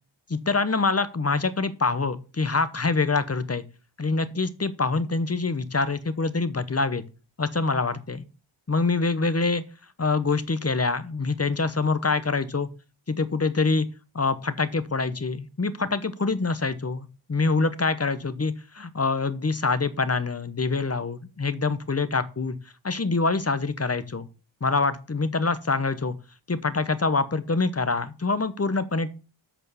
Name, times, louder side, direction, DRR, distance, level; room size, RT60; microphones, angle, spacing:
voice 1, 0.3-3.6 4.0-7.0 7.4-8.2 8.7-9.6 10.0-12.7 13.1-13.9 14.1-22.6 22.8-24.3 24.6-26.1 26.5-29.1, left 3 dB, 30° left, 13 dB, 0.9 m, -25 dB
7.9 x 4.5 x 6.9 m, 0.33 s
wide cardioid pair, 75°, 48 cm